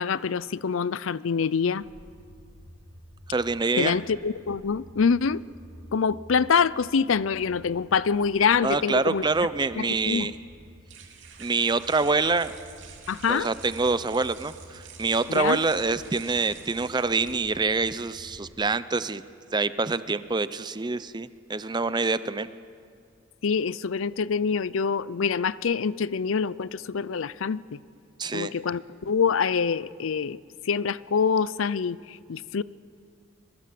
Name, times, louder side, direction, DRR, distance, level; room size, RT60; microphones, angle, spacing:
voice 1, 0.0-1.8 3.8-5.4 5.9-9.2 9.8-10.3 13.1-13.5 15.3-15.6 23.4-27.8 28.3-30.4 30.7-32.6, left 6 dB, 75° left, 19 dB, 0.5 m, -25 dB
sound 1, 1.8-18.5, equal, 75° right, 4.6 m, -51 dB
voice 2, 3.3-3.9 8.6-10.4 11.4-12.5 13.3-19.2 19.5-22.5 28.2-28.5, right 3 dB, 20° right, 14 dB, 0.6 m, -26 dB
sound 2, 10.3-17.9, right 7 dB, 60° right, 3.1 m, -49 dB
25.0 x 22.5 x 7.7 m, 2.2 s
head